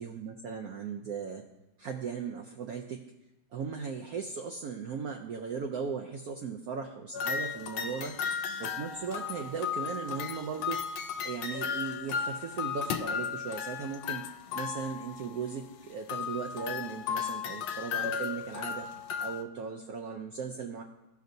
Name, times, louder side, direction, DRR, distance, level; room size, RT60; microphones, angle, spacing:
voice 1, 0.0-1.4 1.8-3.0 3.5-8.1 8.6-10.8 11.2-14.3 14.5-18.8 19.2-20.8, right 6 dB, 75° right, 3 dB, 0.8 m, -37 dB
sound 1, 7.1-15.5 16.1-19.4, left 7 dB, 85° left, 1.4 m, -35 dB
15.5 x 5.2 x 2.6 m, 0.97 s
omnidirectional pair, 2.2 m